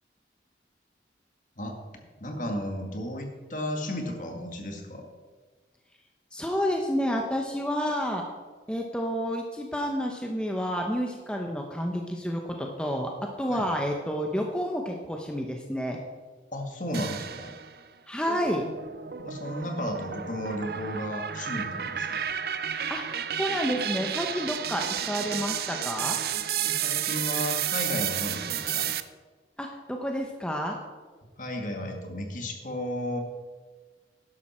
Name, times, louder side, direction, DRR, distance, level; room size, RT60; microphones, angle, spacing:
voice 1, 2.2-5.1 13.5-13.7 16.5-17.5 19.2-22.3 26.6-28.9 31.4-33.2, left 1 dB, 45° left, 3 dB, 1.9 m, -34 dB
voice 2, 6.3-8.2 8.7-16.0 18.1-18.7 22.9-26.2 29.6-30.8, equal, 5° left, 2 dB, 0.8 m, -30 dB
sound 1, 16.9-17.8 18.3-29.0, right 9 dB, 60° right, 0.6 m, -32 dB
12.0 x 11.0 x 4.4 m, 1.4 s
head